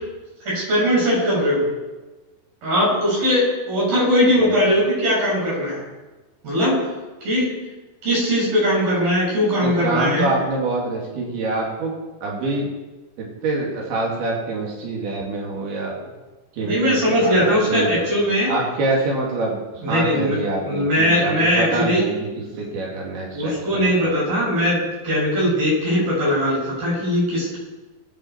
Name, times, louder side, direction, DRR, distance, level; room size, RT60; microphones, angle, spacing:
voice 1, 0.5-1.6 2.6-5.8 6.4-6.8 7.2-7.5 8.0-10.3 16.6-18.5 19.8-20.4 20.6-22.0 23.3-27.6, equal, 70° right, -6 dB, 8.1 m, -20 dB
voice 2, 9.6-11.9 12.2-12.7 13.2-15.9 16.5-18.1 18.5-22.3 22.6-24.0, right 2 dB, 85° right, -3 dB, 4.4 m, -25 dB
23.0 x 9.2 x 4.6 m, 1.2 s
omnidirectional pair, 4.3 m